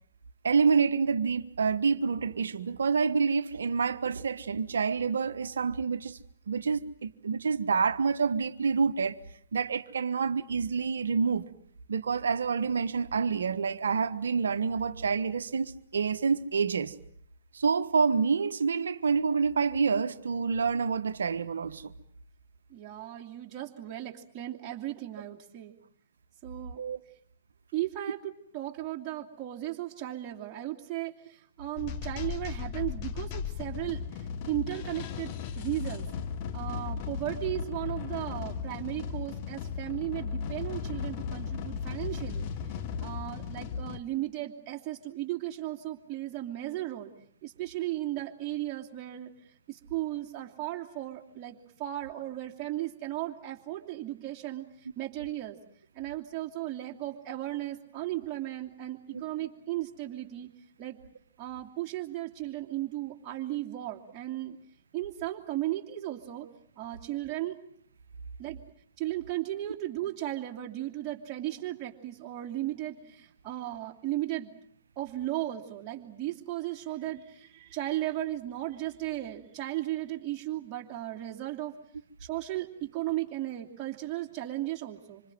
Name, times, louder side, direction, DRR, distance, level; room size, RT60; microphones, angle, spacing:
voice 1, 0.4-6.2 6.5-9.2 9.5-11.5 11.9-16.9 17.5-21.9 26.8-27.0 59.1-59.2, right 5 dB, 70° right, 1.3 m, -27 dB
voice 2, 22.7-25.8 26.4-26.8 27.7-36.1 36.5-42.4 43.0-47.1 47.4-49.3 49.7-54.7 55.0-55.6 55.9-60.5 60.8-61.0 61.4-64.6 64.9-66.5 66.8-67.6 68.4-68.6 69.0-74.5 75.0-81.7 82.2-85.2, right 15 dB, 30° right, 2.8 m, -35 dB
sound 1, 31.8-44.0, left 6 dB, 40° left, 1.7 m, -36 dB
26.0 x 26.0 x 7.8 m
figure-of-eight pair, 115°, 0 cm